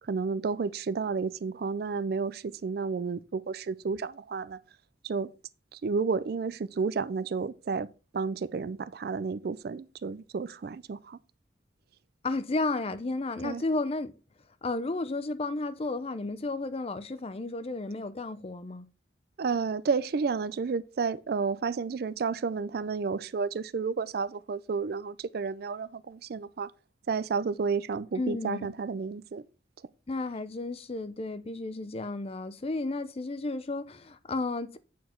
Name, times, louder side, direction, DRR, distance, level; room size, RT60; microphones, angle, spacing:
voice 1, 0.0-4.6 5.0-5.3 5.7-11.2 13.4-13.6 19.4-26.7 27.1-29.4, right 5 dB, 55° right, 0.4 m, -31 dB
voice 2, 12.2-14.1 14.6-18.9 28.2-28.7 30.1-34.8, left 2 dB, 35° left, 0.5 m, -33 dB
8.4 x 4.5 x 4.4 m
head